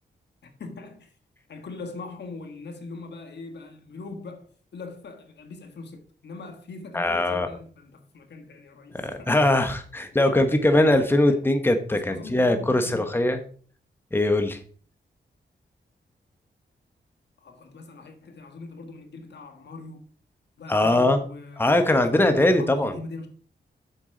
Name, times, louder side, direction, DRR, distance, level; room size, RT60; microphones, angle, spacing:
voice 1, 0.6-1.1 1.5-9.3 10.2-10.6 11.3-11.4 11.9-13.0 17.4-20.0 20.6-21.7 22.1-23.3, left 3 dB, 75° left, 1.6 m, -41 dB
voice 2, 6.9-7.5 8.9-13.4 14.1-14.6 20.7-21.2 21.6-22.9, left 1 dB, 10° left, 1.1 m, -21 dB
8.4 x 7.1 x 3.9 m
cardioid pair, 95°, 18 cm